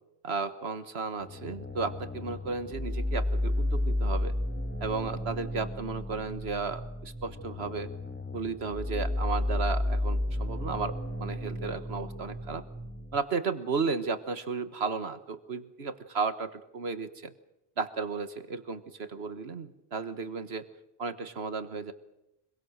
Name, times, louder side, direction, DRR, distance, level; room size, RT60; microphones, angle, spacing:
voice 1, 0.2-4.3 4.8-7.9 8.3-12.6 13.1-17.3 17.8-20.7 21.0-21.9, right 4 dB, 75° right, 10 dB, 1.6 m, -34 dB
sound 1, 1.2-13.2, left 1 dB, 10° left, 1.4 m, -32 dB
26.0 x 22.0 x 6.7 m, 0.89 s
omnidirectional pair, 1.1 m